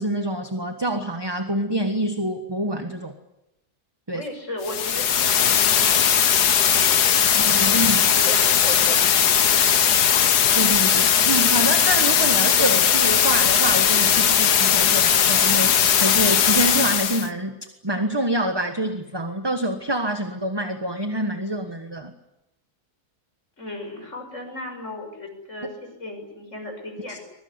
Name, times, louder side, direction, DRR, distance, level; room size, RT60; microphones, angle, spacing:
voice 1, 0.0-3.1 4.1-4.3 7.3-8.1 10.6-17.6 17.8-22.1 27.1-27.2, right 1 dB, 15° right, 7 dB, 1.5 m, -26 dB
voice 2, 4.1-6.1 6.6-7.0 7.9-10.3 23.6-27.2, left 2 dB, 50° left, 4 dB, 6.5 m, -36 dB
sound 1, 4.6-17.3, left 8 dB, 85° left, 1.7 m, -18 dB
24.0 x 22.0 x 9.8 m, 0.88 s
omnidirectional pair, 1.7 m